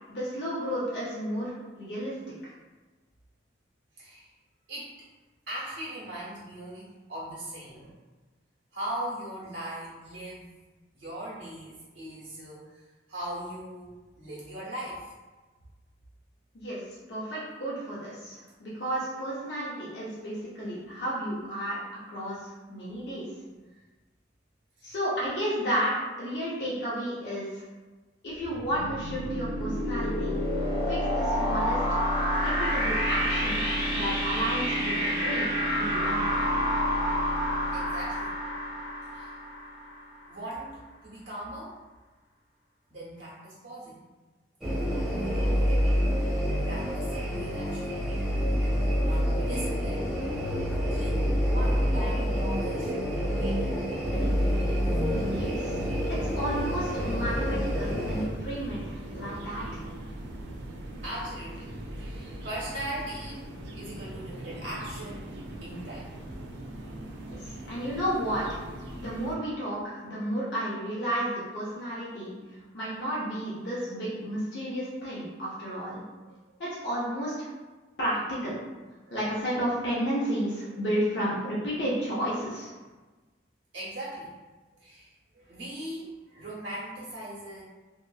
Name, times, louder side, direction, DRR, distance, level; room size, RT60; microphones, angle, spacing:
voice 1, 0.1-1.5 1.7-2.1 2.4-2.5 16.5-16.8 17.1-21.8 22.1-23.3 24.8-25.9 26.2-27.6 28.2-30.4 30.9-31.8 32.4-35.5 35.7-36.4 55.3-55.8 56.1-59.8 67.3-68.6 69.0-72.3 72.7-76.0 76.6-77.5 78.0-78.5 79.1-82.7, equal, 65° left, -8 dB, 0.7 m, -32 dB
voice 2, 4.0-4.3 4.7-4.9 5.5-8.0 8.7-10.5 10.9-15.1 23.5-23.6 24.8-25.0 37.7-38.3 39.1-39.4 40.3-41.8 42.9-44.0 44.8-45.9 46.5-48.0 49.0-50.2 50.9-52.9 53.3-53.7 60.1-60.6 61.0-61.7 62.0-63.4 63.8-66.1 76.2-76.4 79.1-79.2 83.7-84.3 84.8-87.6, right 1 dB, 85° right, -7 dB, 1.1 m, -40 dB
sound 1, 28.4-40.1, equal, 45° right, 1.0 m, -28 dB
sound 2, 44.6-58.2, equal, 5° right, 0.7 m, -27 dB
sound 3, 54.1-69.3, right 1 dB, 65° right, 0.4 m, -41 dB
2.8 x 2.4 x 2.4 m, 1.2 s
head